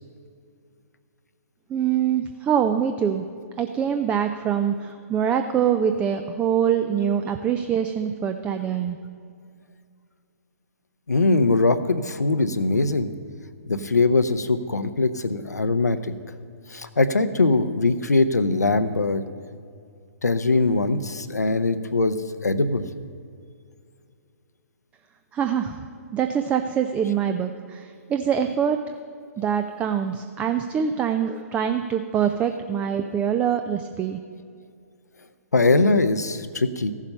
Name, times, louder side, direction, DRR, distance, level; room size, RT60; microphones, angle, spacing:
voice 1, 1.7-3.2 3.6-9.0 25.3-25.9 26.1-28.8 29.4-34.2, right 8 dB, 15° right, 7 dB, 0.4 m, -24 dB
voice 2, 11.1-13.1 13.7-16.1 16.7-19.2 20.2-22.2 22.4-22.8 35.5-36.9, left 3 dB, 80° left, 11 dB, 0.7 m, -21 dB
15.0 x 7.3 x 5.4 m, 2.3 s
figure-of-eight pair, 125°, 9 cm